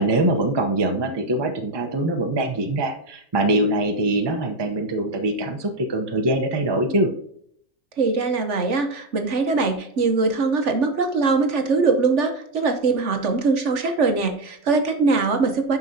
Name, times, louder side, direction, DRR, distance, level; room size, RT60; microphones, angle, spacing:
voice 1, 0.0-7.1, right 1 dB, 20° right, 4 dB, 0.8 m, -23 dB
voice 2, 8.0-15.8, right 4 dB, 55° right, 6 dB, 1.2 m, -22 dB
9.6 x 6.1 x 2.8 m, 0.66 s
omnidirectional pair, 1.5 m